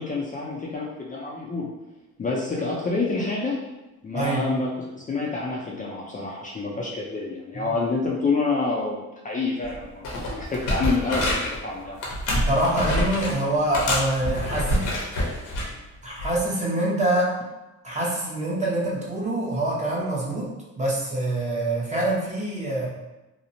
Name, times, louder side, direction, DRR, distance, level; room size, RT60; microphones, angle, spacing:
voice 1, 0.0-1.7 2.2-3.6 4.0-12.1, left 3 dB, 25° left, -3 dB, 0.4 m, -28 dB
voice 2, 4.1-4.4 7.5-7.7 12.3-14.9 16.0-17.3 17.8-20.5 20.8-22.9, right 1 dB, 25° right, -5 dB, 0.8 m, -25 dB
sound 1, 9.6-9.8 10.0-11.6 12.0-13.4 13.7-15.7 16.2-16.4, left 1 dB, 80° left, 0.8 m, -26 dB
2.8 x 2.0 x 2.6 m, 1.0 s
cardioid pair, 90°, 30 cm